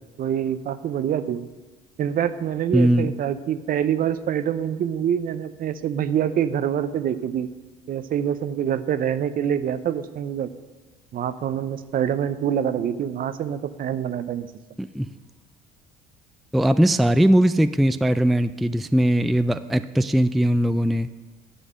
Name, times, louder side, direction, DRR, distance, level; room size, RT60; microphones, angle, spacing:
voice 1, 0.2-1.5 2.0-7.5 7.9-10.5 11.1-14.5, right 9 dB, 50° right, 13 dB, 0.7 m, -25 dB
voice 2, 2.7-3.1 14.8-15.1 16.5-21.1, right 1 dB, ahead, 12 dB, 0.3 m, -20 dB
9.9 x 5.4 x 7.7 m, 1.2 s
supercardioid pair, 70°, 18 cm